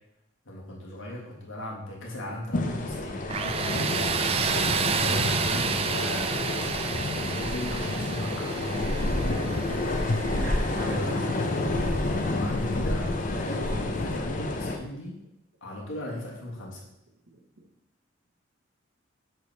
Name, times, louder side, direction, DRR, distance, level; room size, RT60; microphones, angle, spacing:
voice 1, 0.4-4.4 4.6-9.0 10.7-11.7 12.2-15.2 15.6-16.8, left 1 dB, 90° left, -3 dB, 1.7 m, -38 dB
sound 1, 2.5-14.8, left 2 dB, 45° left, 0.6 m, -29 dB
Tools, 3.3-12.1, right 6 dB, 30° right, 0.3 m, -31 dB
voice 2, 4.9-5.4 9.3-9.8 10.3-11.2 11.8-11.9 17.3-17.7, right 2 dB, 75° right, 0 dB, 1.3 m, -40 dB
6.2 x 4.9 x 3.4 m, 0.81 s
head